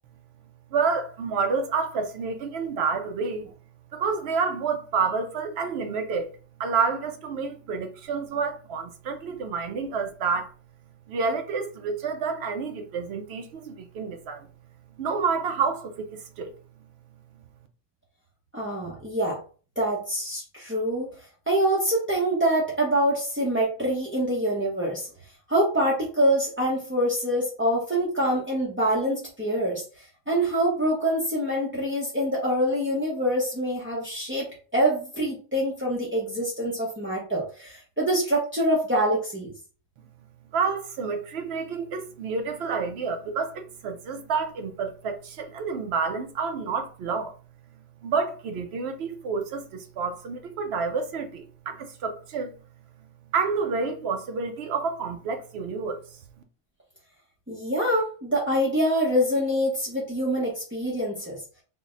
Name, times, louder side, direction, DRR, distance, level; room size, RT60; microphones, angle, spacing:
voice 1, 0.7-3.5 3.9-6.3 6.6-10.5 11.1-14.5 15.0-16.5 40.5-47.3 48.0-52.5 53.3-56.2, right 5 dB, 65° right, 0.7 m, -29 dB
voice 2, 18.5-19.4 19.8-21.1 21.5-25.1 25.5-34.5 34.7-39.5 57.5-61.4, right 1 dB, 15° right, 0.4 m, -25 dB
4.0 x 2.0 x 3.7 m
omnidirectional pair, 1.4 m